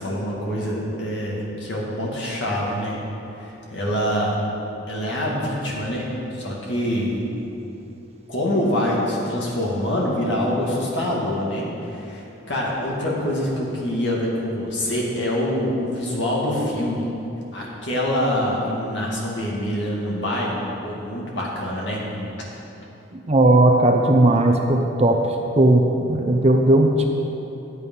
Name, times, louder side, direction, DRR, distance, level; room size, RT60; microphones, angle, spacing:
voice 1, 0.0-3.0 3.4-4.4 4.9-7.2 8.3-17.1 17.5-20.6 20.8-22.0, left 1 dB, 60° left, -4 dB, 2.2 m, -25 dB
voice 2, 23.3-25.2 25.6-25.8 26.1-27.1, right 1 dB, 30° right, 3 dB, 0.7 m, -16 dB
11.0 x 8.3 x 5.5 m, 3.0 s
head